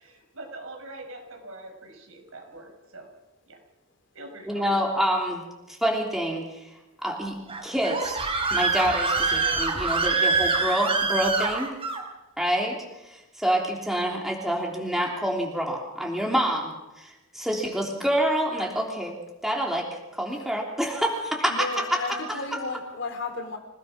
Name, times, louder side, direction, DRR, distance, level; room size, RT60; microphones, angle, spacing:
voice 1, 0.0-3.1 3.5-3.6 4.1-4.7, right 2 dB, 85° right, 2 dB, 6.3 m, -43 dB
voice 2, 4.5-5.4 5.7-6.7 7.0-8.2 8.5-11.7 12.4-12.8 13.0-19.2 19.4-22.2 22.5-22.6, equal, ahead, -1 dB, 3.3 m, -27 dB
Screaming, 7.5-12.0, right 3 dB, 30° right, 4.0 m, -25 dB
voice 3, 21.5-23.6, left 3 dB, 60° left, 6 dB, 3.8 m, -33 dB
27.0 x 18.0 x 6.1 m, 1.0 s
head